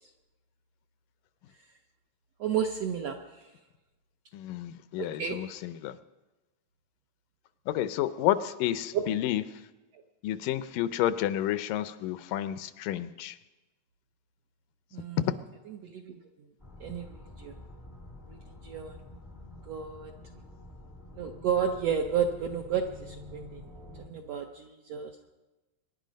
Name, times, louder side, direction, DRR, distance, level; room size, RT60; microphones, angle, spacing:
voice 1, 2.4-3.4 5.0-5.4 8.9-9.0 14.9-15.2 15.8-16.2 16.8-17.1 17.4-17.5 18.6-19.0 19.7-20.1 21.1-23.6 24.1-25.1, right 7 dB, 75° right, 3 dB, 1.5 m, -31 dB
voice 2, 4.3-6.0 7.7-9.4 10.2-13.4 15.2-15.3, left 12 dB, 80° left, 13 dB, 2.2 m, -30 dB
sound 1, 16.6-24.1, left 1 dB, 15° left, 0.6 m, -48 dB
24.5 x 11.0 x 5.2 m, 1.1 s
omnidirectional pair, 3.9 m